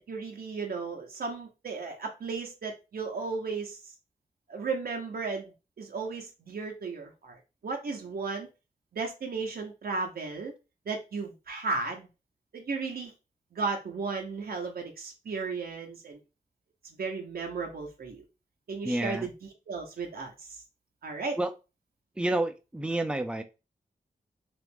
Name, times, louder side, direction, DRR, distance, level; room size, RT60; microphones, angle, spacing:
voice 1, 0.1-3.8 4.5-8.5 8.9-10.5 10.9-12.1 12.5-13.1 13.5-16.2 17.0-18.2 18.7-19.3 19.7-20.6 21.0-21.4, right 4 dB, 85° right, 2 dB, 0.7 m, -35 dB
voice 2, 18.8-19.3 21.4-21.5 22.2-23.4, right 1 dB, 5° right, 7 dB, 0.4 m, -29 dB
3.0 x 2.5 x 3.4 m, 0.28 s
wide cardioid pair, 100°, 15 cm